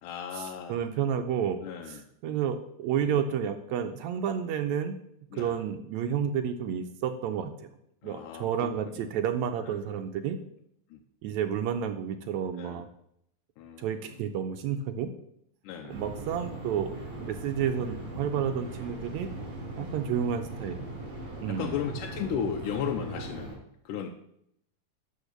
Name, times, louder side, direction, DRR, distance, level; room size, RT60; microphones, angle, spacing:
voice 1, 0.0-0.9 1.6-2.1 3.0-3.2 5.3-5.6 8.0-9.1 9.6-9.8 10.9-11.0 12.6-12.8 13.6-14.2 15.6-16.0 19.8-20.1 21.5-24.1, left 8 dB, 85° left, 2 dB, 2.2 m, -36 dB
voice 2, 0.7-1.6 1.9-2.0 2.2-5.0 5.3-7.7 8.0-10.4 11.2-12.9 13.8-15.1 15.9-16.9 17.2-19.3 19.8-20.8 21.4-21.8, right 8 dB, 75° right, 7 dB, 1.7 m, -30 dB
sound 1, 15.9-23.5, right 2 dB, 45° right, 4.6 m, -40 dB
12.0 x 4.7 x 6.6 m, 0.74 s
omnidirectional pair, 3.7 m